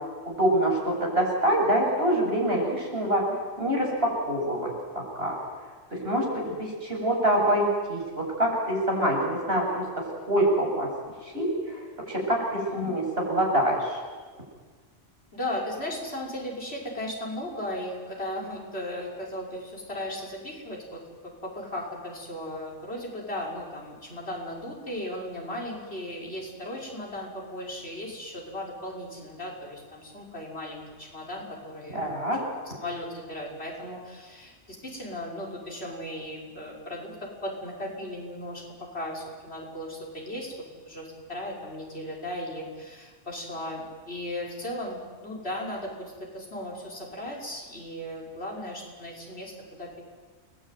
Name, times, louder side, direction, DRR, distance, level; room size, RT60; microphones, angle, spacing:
voice 1, 0.3-3.2 3.6-5.3 5.9-10.9 11.2-14.0 31.9-32.4, right 1 dB, 50° right, -1 dB, 7.9 m, -26 dB
voice 2, 12.5-12.9 15.3-32.2 32.8-40.5 40.8-49.5 49.8-50.0, left 1 dB, 55° left, -1 dB, 6.4 m, -36 dB
29.5 x 21.0 x 9.4 m, 1.4 s
omnidirectional pair, 1.3 m